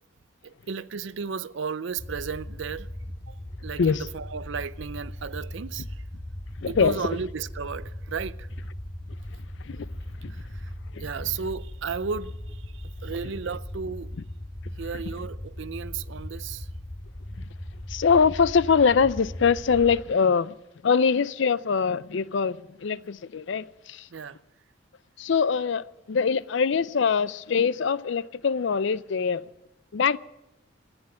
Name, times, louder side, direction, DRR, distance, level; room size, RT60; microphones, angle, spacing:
voice 1, 0.4-2.9 3.3-3.4 3.6-5.9 6.7-8.5 10.5-10.6 11.0-14.1 14.8-16.7 24.1-24.4, right 5 dB, 65° right, 0.5 m, -34 dB
sound 1, 2.0-20.0, left 1 dB, 20° left, 0.7 m, -38 dB
voice 2, 6.6-7.0 9.7-9.8 10.2-10.3 11.0-11.1 17.9-20.5 20.8-24.0 25.2-29.4 29.9-30.2, left 6 dB, 65° left, 0.4 m, -23 dB
14.0 x 9.7 x 9.7 m
head